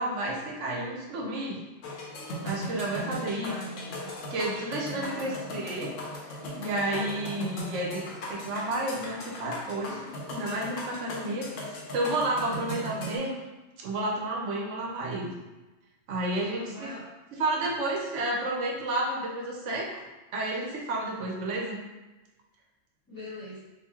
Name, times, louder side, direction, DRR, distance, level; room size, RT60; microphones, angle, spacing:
voice 1, 0.0-1.6 2.4-3.5 4.3-5.9 6.2-10.0 10.3-13.3 13.8-15.4 16.1-16.9 17.4-19.9 20.3-21.8, right 1 dB, 75° right, -1 dB, 1.0 m, -31 dB
sound 1, 1.8-13.2, equal, 85° left, 1.0 m, -38 dB
voice 2, 3.2-4.1 4.9-5.6 11.6-11.8 13.1-13.3 16.5-17.0 23.1-23.6, equal, 15° left, -11 dB, 1.2 m, -43 dB
4.0 x 2.4 x 2.8 m, 1.1 s
omnidirectional pair, 1.3 m